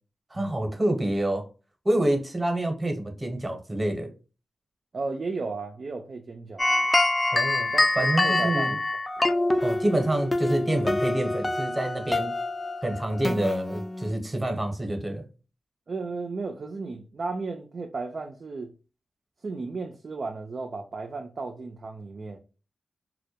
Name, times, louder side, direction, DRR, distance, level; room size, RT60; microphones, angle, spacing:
voice 1, 0.3-1.5 1.8-4.1 7.3-7.7 8.0-8.8 9.6-12.4 12.8-15.3, right 1 dB, 25° right, 0.8 m, -27 dB
voice 2, 4.9-6.9 7.7-8.8 9.2-9.3 15.9-18.7 19.4-22.4, right 3 dB, 60° right, 0.3 m, -34 dB
sound 1, 6.6-14.1, left 2 dB, 25° left, 0.4 m, -26 dB
2.1 x 2.1 x 2.8 m
supercardioid pair, 40°, 0 cm